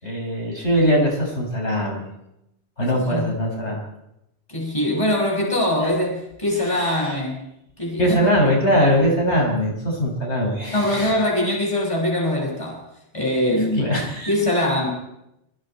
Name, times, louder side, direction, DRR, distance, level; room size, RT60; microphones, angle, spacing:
voice 1, 0.0-2.0 2.8-3.8 6.7-7.2 8.0-11.1 13.8-14.3, equal, 75° left, -1 dB, 6.4 m, -21 dB
voice 2, 2.9-3.3 4.5-7.4 7.8-8.2 10.7-12.8 13.1-13.9 14.3-14.9, left 1 dB, 30° left, -1 dB, 6.1 m, -22 dB
25.5 x 24.5 x 4.5 m, 0.86 s
omnidirectional pair, 1.2 m